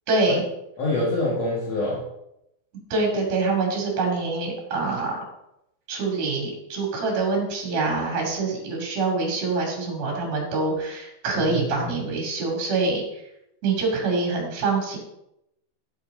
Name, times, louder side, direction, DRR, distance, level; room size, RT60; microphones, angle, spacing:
voice 1, 0.1-0.5 2.9-5.2 5.9-13.2 13.6-15.0, right 3 dB, 45° right, -1 dB, 3.5 m, -25 dB
voice 2, 0.8-2.0 11.3-12.0, left 1 dB, 50° left, -5 dB, 2.3 m, -26 dB
11.5 x 9.3 x 3.8 m, 0.83 s
omnidirectional pair, 5.1 m